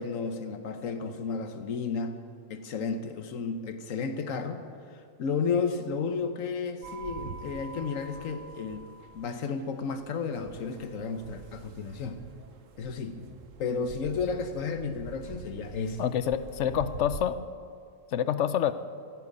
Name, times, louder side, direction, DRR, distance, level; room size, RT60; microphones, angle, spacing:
voice 1, 0.0-2.2 2.5-4.6 4.9-12.2 12.8-13.3 13.6-16.0, left 5 dB, 85° left, 8 dB, 1.3 m, -33 dB
Indian Temple Bell, 6.8-17.4, right 5 dB, 80° right, 1.1 m, -45 dB
voice 2, 16.0-17.4 18.1-18.7, left 9 dB, 70° left, 13 dB, 1.0 m, -27 dB
14.5 x 10.5 x 8.5 m, 2.3 s
omnidirectional pair, 1.3 m